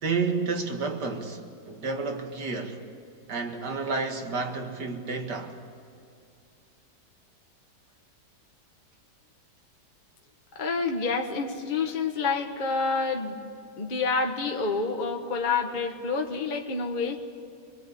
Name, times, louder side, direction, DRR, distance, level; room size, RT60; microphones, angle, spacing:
voice 1, 0.0-2.8 3.3-5.6, right 4 dB, 65° right, 2.5 m, -30 dB
voice 2, 10.6-13.4 13.8-17.2, left 4 dB, 30° left, 1.4 m, -28 dB
26.0 x 21.5 x 8.4 m
omnidirectional pair, 1.9 m